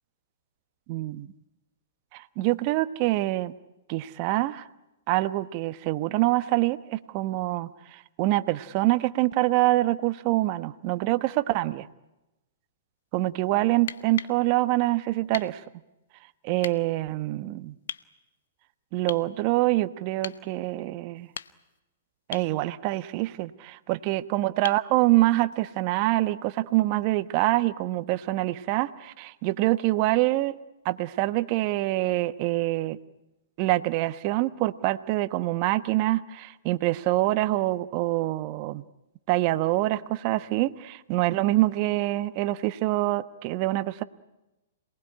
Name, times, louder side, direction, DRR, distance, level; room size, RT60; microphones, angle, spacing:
voice 1, 0.9-1.3 2.1-3.5 3.9-4.7 5.1-11.9 13.1-15.6 16.4-17.7 18.9-21.3 22.3-30.5 30.8-33.0 33.6-38.8 39.3-44.0, right 18 dB, 40° right, 13 dB, 1.1 m, -25 dB
sound 1, 13.7-14.4 15.3-15.5 16.6-16.8 17.9-18.1 19.1-19.3 20.2-20.4 21.2-21.8 22.3-22.5 24.6-24.9 26.7-26.8, left 8 dB, 70° left, 0.9 m, -38 dB
27.0 x 19.5 x 9.8 m, 0.99 s
hypercardioid pair, 120°, 0 cm